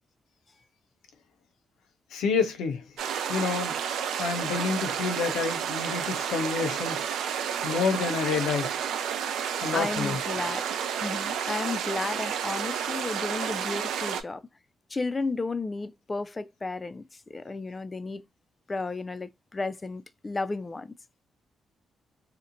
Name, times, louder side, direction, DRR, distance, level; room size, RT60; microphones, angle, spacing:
voice 1, 2.1-2.9 3.3-3.8 4.2-7.0 7.6-8.8 9.6-10.2, left 5 dB, 80° left, 0.5 m, -28 dB
sound 1, 3.0-14.2, right 8 dB, 80° right, 0.4 m, -31 dB
voice 2, 9.7-14.4 14.9-17.0 17.3-18.3 18.7-20.9, left 3 dB, 30° left, 0.3 m, -33 dB
2.9 x 2.1 x 2.5 m
supercardioid pair, 55°, 0 cm